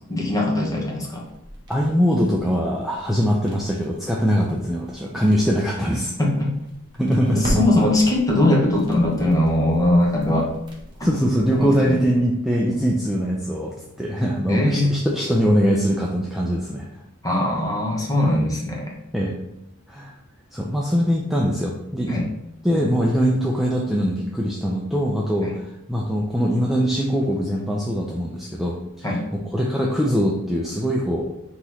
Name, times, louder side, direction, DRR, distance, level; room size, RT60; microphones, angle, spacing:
voice 1, 0.1-1.2 6.2-6.5 7.4-10.5 11.5-12.0 14.5-15.0 17.2-18.9 22.1-22.3 25.4-25.5 29.0-29.2, left 1 dB, 15° left, -1 dB, 0.9 m, -20 dB
sound 1, 1.2-12.1, equal, 20° right, 1.0 m, -38 dB
voice 2, 1.7-6.1 7.0-7.6 11.0-16.9 19.1-19.3 19.9-20.1 20.5-22.2 22.6-31.2, equal, ahead, -3 dB, 0.4 m, -22 dB
3.9 x 3.0 x 4.2 m, 0.87 s
head